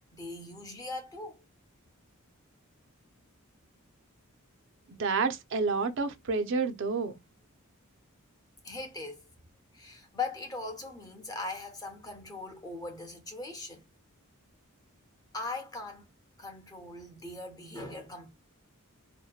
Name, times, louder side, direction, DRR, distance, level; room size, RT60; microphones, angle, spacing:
voice 1, 0.1-1.4 8.6-9.2 9.7-13.9 15.3-16.1 16.4-18.3, left 3 dB, 15° left, 0.6 m, -40 dB
voice 2, 4.9-7.2, right 4 dB, 60° right, 0.4 m, -29 dB
2.7 x 2.1 x 2.2 m
head